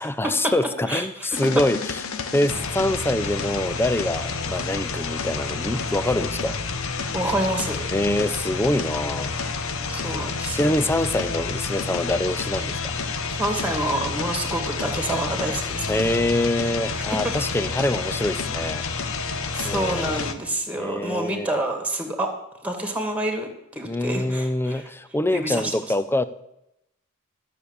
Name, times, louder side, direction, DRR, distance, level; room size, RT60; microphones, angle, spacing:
voice 1, 0.0-2.0 2.3-6.6 7.9-9.3 10.5-12.8 15.9-18.9 19.6-20.2 20.8-21.5 23.8-26.2, left 1 dB, 10° left, 0.5 m, -25 dB
sound 1, 1.3-20.3, left 4 dB, 70° left, 1.1 m, -29 dB
voice 2, 7.1-7.9 9.9-10.7 13.3-16.1 16.9-17.3 19.6-22.3 22.6-24.9 25.3-25.7, right 1 dB, 5° right, 2.1 m, -28 dB
13.0 x 7.0 x 8.1 m
head